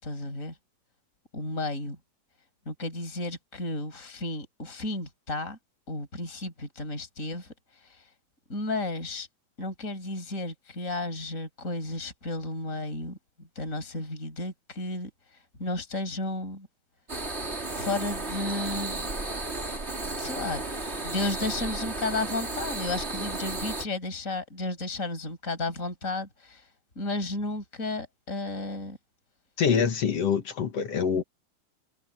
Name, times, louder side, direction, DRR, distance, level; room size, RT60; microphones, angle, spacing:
voice 1, 0.0-0.5 1.3-2.0 2.7-5.6 5.9-7.5 7.8-8.0 8.5-9.3 9.6-15.1 15.6-16.7 17.7-19.1 20.2-20.6 21.0-26.6 27.0-29.0, left 2 dB, 20° left, 6.6 m, -33 dB
sound 1, 17.1-23.8, right 2 dB, 20° right, 3.0 m, -33 dB
voice 2, 29.6-31.2, left 6 dB, 55° left, 2.3 m, -25 dB
omnidirectional pair, 4.0 m